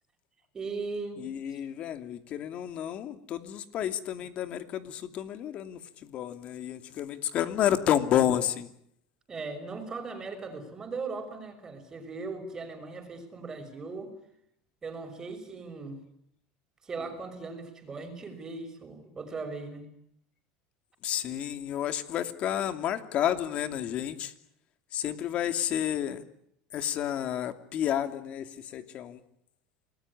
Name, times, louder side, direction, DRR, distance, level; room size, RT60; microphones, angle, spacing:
voice 1, 0.5-1.6 9.3-14.1 14.8-16.0 16.8-19.9, right 4 dB, 20° right, 7 dB, 6.1 m, -38 dB
voice 2, 1.2-8.7 21.0-24.3 24.9-26.2 26.7-29.2, left 10 dB, 45° left, 10 dB, 2.8 m, -30 dB
28.5 x 20.0 x 9.9 m, 0.73 s
supercardioid pair, 140°, 3 cm